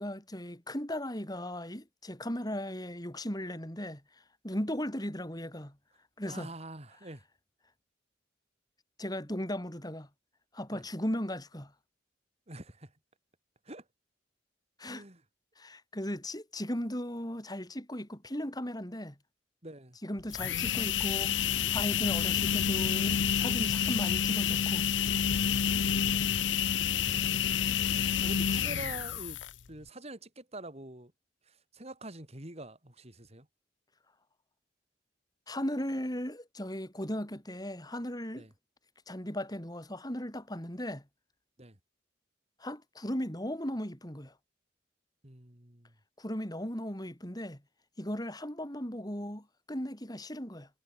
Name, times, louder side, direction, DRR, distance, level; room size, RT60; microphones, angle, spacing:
voice 1, 0.0-4.0 4.4-5.8 6.2-6.5 9.0-10.1 10.5-11.7 14.8-15.0 15.6-19.2 20.0-24.9 35.5-38.5 39.1-41.0 42.6-44.3 46.2-47.6 48.0-50.7, left 1 dB, 20° left, 6.5 m, -37 dB
voice 2, 6.3-7.2 10.7-10.8 12.5-12.9 13.7-13.8 14.8-15.2 19.6-20.0 26.8-27.6 28.2-29.4 29.7-31.1 31.5-33.5 38.4-38.5 41.6-41.8 45.2-45.9, right 2 dB, 35° right, 4.5 m, -46 dB
sound 1, 20.2-29.7, left 8 dB, 85° left, 0.7 m, -29 dB
head